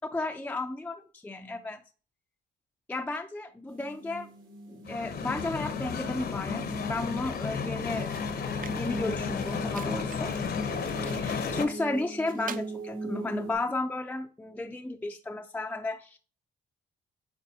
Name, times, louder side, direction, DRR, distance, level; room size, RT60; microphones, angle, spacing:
voice 1, 0.1-1.8 2.9-4.3 4.7-8.1 8.7-10.3 11.0-16.2, left 2 dB, 10° left, 5 dB, 0.4 m, -33 dB
sound 1, 3.7-13.5, right 2 dB, 80° right, 2.3 m, -40 dB
sound 2, 4.8-11.7, left 6 dB, 50° left, 0.8 m, -33 dB
sound 3, 7.3-7.4 7.8-12.7, right 7 dB, 45° right, 0.5 m, -48 dB
8.6 x 4.1 x 2.7 m, 0.38 s
cardioid pair, 90°, 20 cm